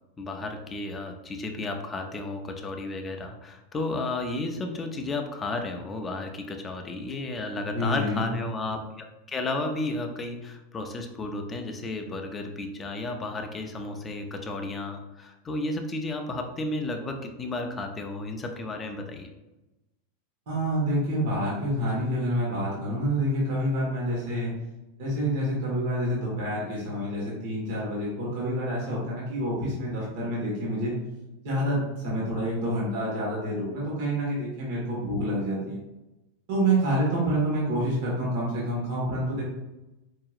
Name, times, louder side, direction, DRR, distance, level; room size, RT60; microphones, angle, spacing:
voice 1, 0.2-19.3, left 2 dB, 15° left, 4 dB, 0.4 m, -33 dB
voice 2, 7.7-8.3 20.5-24.5 25.0-30.9 31.4-35.8 36.5-39.4, right 1 dB, 60° right, -6 dB, 1.4 m, -27 dB
4.7 x 2.8 x 2.4 m, 1.0 s
supercardioid pair, 160°, 0 cm